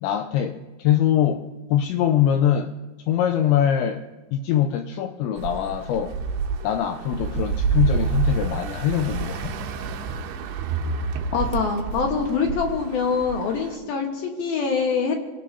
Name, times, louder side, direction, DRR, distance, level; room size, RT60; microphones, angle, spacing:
voice 1, 0.0-1.4 1.7-2.7 3.1-4.0 4.3-6.2 6.6-9.7, left 10 dB, 85° left, 7 dB, 2.6 m, -23 dB
sound 1, 5.4-13.8, right 5 dB, 75° right, 2.7 m, -28 dB
voice 2, 11.3-15.3, left 5 dB, 65° left, 2 dB, 2.5 m, -24 dB
26.0 x 17.5 x 2.7 m, 1.2 s
omnidirectional pair, 5.8 m